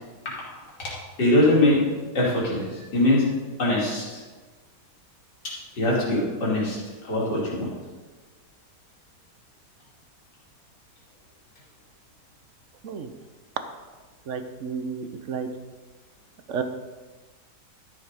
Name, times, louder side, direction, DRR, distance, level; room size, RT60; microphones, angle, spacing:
voice 1, 1.2-1.8 2.2-3.3 3.6-4.2 5.4-6.8 7.0-7.7, left 1 dB, 70° left, -6 dB, 3.4 m, -22 dB
voice 2, 14.3-15.5 16.5-16.6, right 6 dB, 55° right, 8 dB, 0.9 m, -31 dB
12.5 x 6.6 x 5.1 m, 1.3 s
omnidirectional pair, 1.9 m